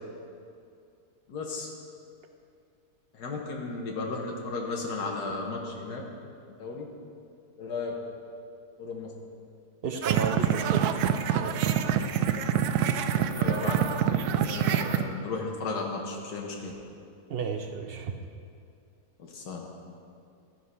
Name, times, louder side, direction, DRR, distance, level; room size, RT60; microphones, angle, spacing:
voice 1, 1.3-1.7 3.1-6.0 6.5-6.9 7.6-7.9 8.8-9.1 13.1-14.0 14.2-16.7 19.2-19.7, left 3 dB, 90° left, -1 dB, 1.7 m, -35 dB
voice 2, 9.8-10.8 11.4-11.5 17.3-18.1, right 6 dB, 60° right, 5 dB, 0.6 m, -32 dB
sound 1, 10.0-15.0, right 9 dB, 80° right, 1.1 m, -26 dB
13.5 x 5.8 x 5.6 m, 2.4 s
omnidirectional pair, 1.7 m